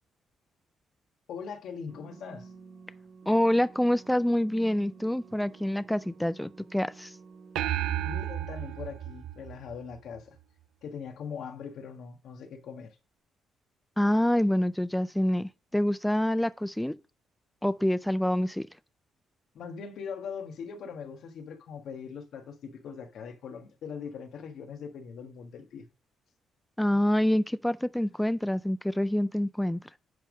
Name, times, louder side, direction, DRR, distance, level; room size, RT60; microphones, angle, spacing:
voice 1, 1.3-2.5 8.0-10.4 10.8-12.9 19.5-25.8, left 6 dB, 75° left, 1.6 m, -41 dB
sound 1, 1.9-8.1, right 5 dB, 60° right, 3.9 m, -51 dB
voice 2, 3.3-7.2 14.0-17.0 17.6-18.7 26.8-30.0, left 1 dB, 5° left, 0.3 m, -26 dB
sound 2, 7.6-10.2, right 12 dB, 85° right, 0.5 m, -33 dB
10.0 x 3.5 x 6.2 m
cardioid pair, 90°, 0 cm